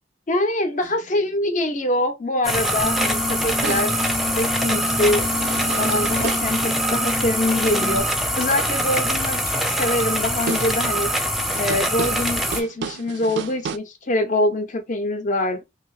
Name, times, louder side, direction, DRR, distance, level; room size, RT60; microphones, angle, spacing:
voice 1, 0.3-4.1 4.4-5.2 5.7-8.1 8.3-11.1 11.6-15.6, left 1 dB, 40° left, 0.7 m, -24 dB
sound 1, 0.8-1.5 3.6-6.6 10.1-10.2 10.5-10.9 11.4-13.8, right 6 dB, 65° right, 0.3 m, -33 dB
sound 2, 2.4-12.6, right 1 dB, ahead, 0.4 m, -23 dB
sound 3, 2.8-8.0, left 2 dB, 15° left, 0.9 m, -29 dB
2.9 x 2.7 x 3.1 m
head